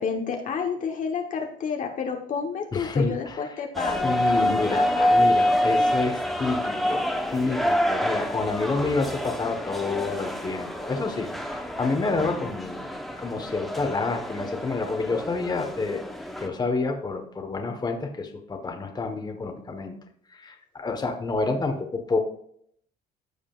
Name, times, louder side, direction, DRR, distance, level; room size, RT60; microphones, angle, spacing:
voice 1, 0.0-4.1 4.4-5.3, left 6 dB, 50° left, 3 dB, 1.2 m, -30 dB
voice 2, 2.7-3.4 4.0-4.8 5.1-7.0 7.3-12.9 13.2-16.0 16.4-20.0 20.3-22.2, left 3 dB, 25° left, 4 dB, 1.2 m, -28 dB
sound 1, 3.7-16.5, equal, ahead, 1.0 m, -27 dB
14.5 x 5.0 x 2.5 m, 0.66 s
cardioid pair, 110°, 17 cm